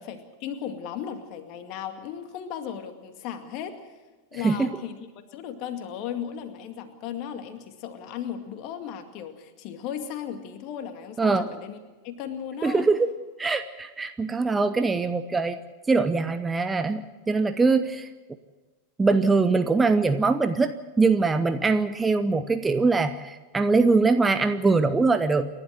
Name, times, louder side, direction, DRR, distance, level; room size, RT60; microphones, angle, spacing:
voice 1, 0.0-3.9 4.3-11.8 12.0-12.9, left 9 dB, 40° left, 7 dB, 2.2 m, -36 dB
voice 2, 11.2-11.5 12.6-13.1 13.4-15.6 15.9-18.1 19.0-25.5, right 3 dB, 10° right, 10 dB, 0.8 m, -22 dB
29.0 x 12.0 x 7.8 m, 1.3 s
figure-of-eight pair, 90°, 0 cm